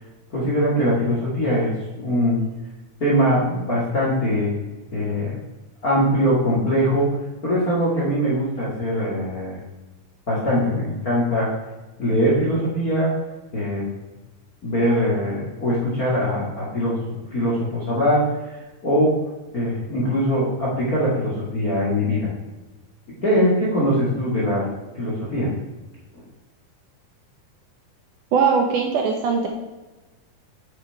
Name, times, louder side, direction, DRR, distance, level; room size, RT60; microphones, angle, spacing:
voice 1, 0.3-2.4 3.0-4.5 4.9-5.4 5.8-7.2 7.4-9.6 10.3-11.5 12.0-13.1 13.5-13.9 14.6-18.2 18.8-19.2 19.5-22.3 23.2-24.7 24.9-25.5, equal, 35° left, -5 dB, 1.7 m, -22 dB
voice 2, 28.3-29.5, right 5 dB, 70° right, 2 dB, 2.2 m, -20 dB
8.3 x 8.0 x 4.6 m, 1.1 s
omnidirectional pair, 4.4 m